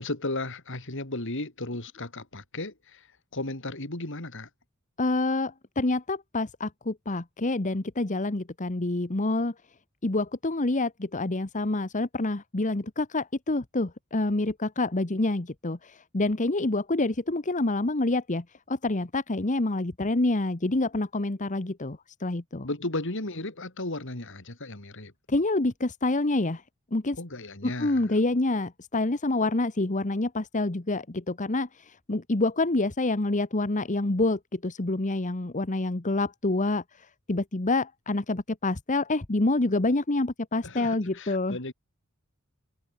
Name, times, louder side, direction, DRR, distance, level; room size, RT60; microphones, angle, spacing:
voice 1, 0.0-3.1 3.3-4.5 22.6-25.1 27.2-28.1 40.6-41.7, left 2 dB, 60° left, 3.8 m, -35 dB
voice 2, 5.0-9.5 10.0-22.7 25.3-26.6 26.9-27.2 27.6-41.6, left 2 dB, 35° left, 1.2 m, -27 dB
head